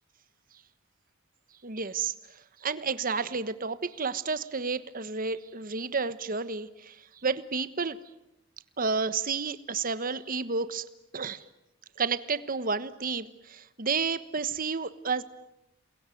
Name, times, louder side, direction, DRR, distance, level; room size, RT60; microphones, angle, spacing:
voice 1, 1.6-2.1 2.6-7.0 7.2-8.0 8.8-10.9 11.1-11.4 12.0-15.2, right 4 dB, 40° right, 13 dB, 1.3 m, -31 dB
29.0 x 22.0 x 9.3 m, 0.87 s
head